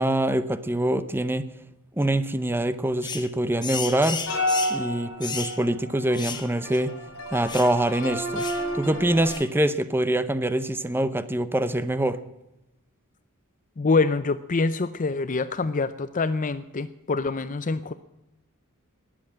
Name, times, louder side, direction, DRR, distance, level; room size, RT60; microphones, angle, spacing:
voice 1, 0.0-1.4 2.0-4.2 4.7-6.9 7.3-8.4 8.7-12.2, right 1 dB, 10° right, 13 dB, 0.7 m, -24 dB
sound 1, 3.0-3.3 3.6-4.8 5.2-5.6 6.1-6.5 6.7-6.8 7.5-7.7 8.4-8.6 9.2-9.5, left 6 dB, 20° left, 1.2 m, -34 dB
sound 2, 4.1-9.3, left 1 dB, 65° left, 5.8 m, -31 dB
voice 2, 13.8-17.9, left 3 dB, 35° left, 12 dB, 0.6 m, -25 dB
20.0 x 7.8 x 8.7 m, 0.92 s
head